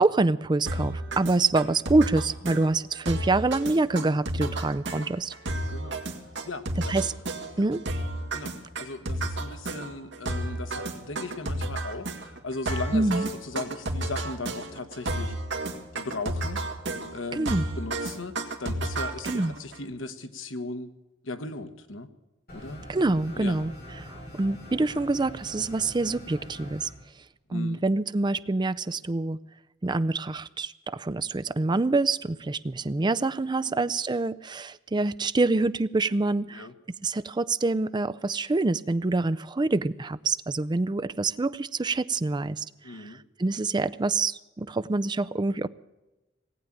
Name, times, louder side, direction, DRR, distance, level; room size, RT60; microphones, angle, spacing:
voice 1, 0.0-5.3 6.9-7.1 7.6-7.8 12.9-13.3 17.3-17.6 19.3-19.5 22.9-23.7 24.0-26.9 27.5-29.4 29.8-36.7 37.0-45.7, right 3 dB, 25° right, 14 dB, 0.5 m, -26 dB
sound 1, 0.7-19.8, right 1 dB, 65° right, 2.0 m, -32 dB
voice 2, 5.7-6.0 6.4-6.9 7.5-7.7 8.3-15.3 15.9-16.6 17.1-18.3 18.6-20.9 21.2-22.1 22.5-22.8 23.3-23.6 27.5-27.8 33.7-33.9 36.5-36.7 42.8-43.2, left 3 dB, 85° left, 9 dB, 1.3 m, -37 dB
sound 2, 22.5-26.9, equal, 50° left, 7.7 m, -43 dB
18.5 x 8.6 x 8.9 m, 1.0 s
head